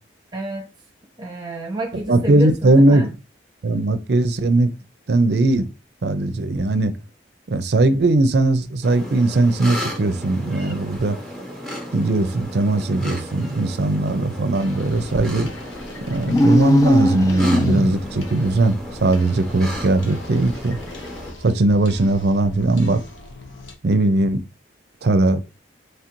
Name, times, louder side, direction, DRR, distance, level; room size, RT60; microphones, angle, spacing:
voice 1, 0.3-0.7 1.2-3.1, equal, 25° right, 0.8 m, -30 dB
voice 2, 2.1-3.1 3.6-4.7 5.1-5.7 6.0-6.9 7.5-11.2 11.9-15.5 16.1-20.8 21.4-23.0 23.8-24.4 25.0-25.4, right 2 dB, 60° right, 0.5 m, -19 dB
sound 1, 8.8-21.3, equal, ahead, 1.1 m, -35 dB
sound 2, 14.5-23.7, left 1 dB, 85° left, 0.8 m, -40 dB
sound 3, 16.3-18.2, left 1 dB, 20° left, 0.4 m, -18 dB
3.2 x 2.5 x 4.4 m
head